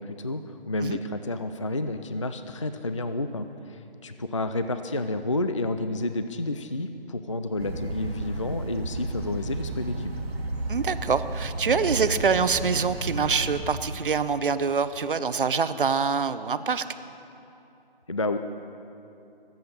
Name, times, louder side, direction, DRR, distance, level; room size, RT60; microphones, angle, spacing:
voice 1, 0.0-10.1 18.1-18.4, left 2 dB, 35° left, 9 dB, 0.4 m, -30 dB
sound 1, 7.6-14.0, right 2 dB, 85° right, 1.7 m, -33 dB
voice 2, 10.7-16.8, right 5 dB, 60° right, 12 dB, 0.8 m, -25 dB
23.0 x 7.9 x 6.7 m, 2.8 s
figure-of-eight pair, 160°, 30 cm